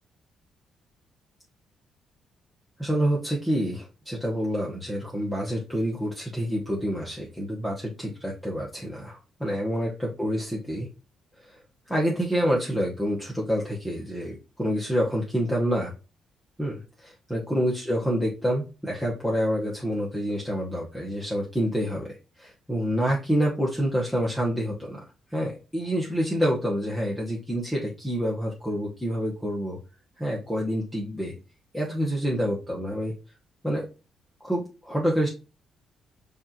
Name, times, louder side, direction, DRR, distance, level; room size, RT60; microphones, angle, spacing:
voice 1, 2.8-10.9 11.4-11.6 11.9-15.9 16.6-25.0 25.3-29.8 30.2-31.4 31.7-33.1 33.6-33.8 34.4-35.3, equal, 5° left, -3 dB, 1.0 m, -27 dB
5.2 x 2.5 x 2.9 m, 0.32 s
cardioid pair, 90°, 0 cm